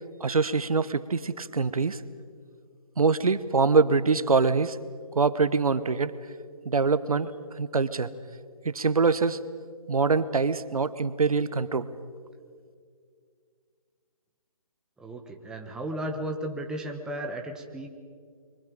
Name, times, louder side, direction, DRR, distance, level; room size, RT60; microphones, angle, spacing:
voice 1, 0.2-2.0 3.0-4.8 5.1-6.2 6.6-7.3 7.6-8.1 8.6-9.4 9.9-11.9, right 4 dB, 75° right, 15 dB, 1.1 m, -24 dB
voice 2, 15.0-17.9, right 1 dB, 5° right, 3 dB, 1.0 m, -34 dB
29.0 x 24.0 x 5.2 m, 2.1 s
figure-of-eight pair, 150°, 19 cm